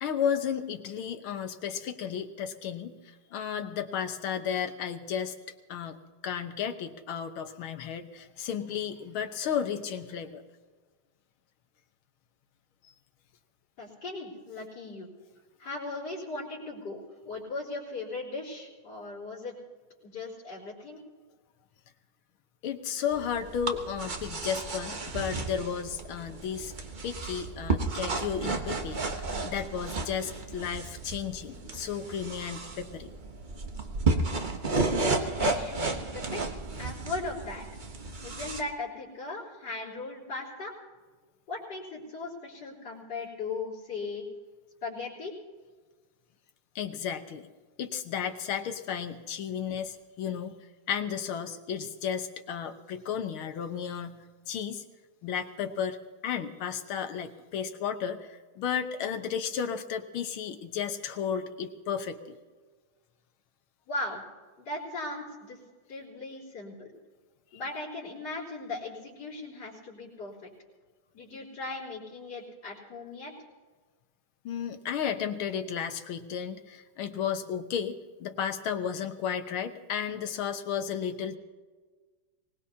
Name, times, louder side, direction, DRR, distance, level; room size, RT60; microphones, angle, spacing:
voice 1, 0.0-5.4 5.7-6.0 6.2-10.4 22.6-26.7 27.0-33.1 46.8-47.5 47.8-50.6 50.9-54.8 55.2-56.0 56.2-62.4 74.5-81.4, left 8 dB, 80° left, 7 dB, 1.9 m, -33 dB
voice 2, 13.8-15.1 15.6-19.5 20.0-21.0 34.8-37.6 38.2-40.7 41.5-44.3 44.8-45.3 63.9-64.2 64.6-65.6 65.9-66.9 67.5-70.5 71.1-73.3, left 3 dB, 50° left, -11 dB, 4.5 m, -38 dB
sound 1, 23.1-38.6, right 3 dB, 35° right, 0.7 m, -33 dB
24.0 x 19.0 x 2.8 m, 1.4 s
omnidirectional pair, 2.3 m